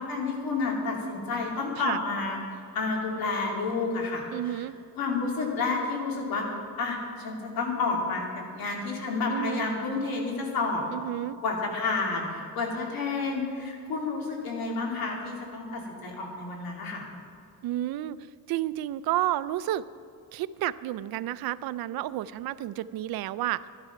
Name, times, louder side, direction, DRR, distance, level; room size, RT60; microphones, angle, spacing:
voice 1, 0.0-2.4 2.7-4.6 5.0-6.4 6.8-8.2 8.5-10.8 11.4-17.1, left 3 dB, 80° left, 0 dB, 2.7 m, -30 dB
voice 2, 4.3-4.8 9.3-9.7 10.9-11.4 17.6-18.2 18.5-19.8 20.3-23.6, right 14 dB, 90° right, 16 dB, 0.5 m, -31 dB
12.0 x 11.0 x 5.8 m, 2.3 s
cardioid pair, 155°, 35 cm